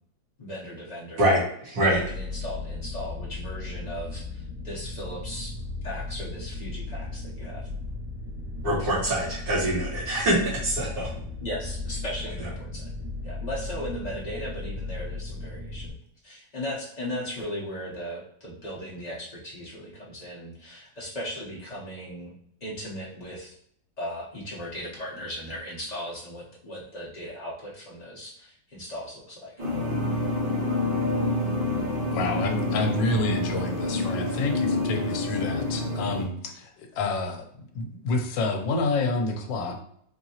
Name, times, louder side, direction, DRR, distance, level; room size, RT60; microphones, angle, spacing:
voice 1, 0.4-1.2 1.8-5.5 5.8-7.7 11.4-12.9 13.2-15.9 16.2-22.3 22.6-23.5 24.0-29.5, equal, 55° left, -6 dB, 0.4 m, -37 dB
voice 2, 1.2-2.0 8.6-11.1, right 1 dB, 55° right, -7 dB, 2.0 m, -24 dB
sound 1, 1.9-15.9, left 2 dB, 90° right, 1.8 m, -36 dB
sound 2, 29.6-36.2, left 2 dB, 30° right, 1.3 m, -27 dB
voice 3, 32.1-39.7, left 3 dB, 80° left, 4 dB, 1.3 m, -28 dB
4.3 x 2.7 x 2.8 m, 0.66 s
omnidirectional pair, 2.0 m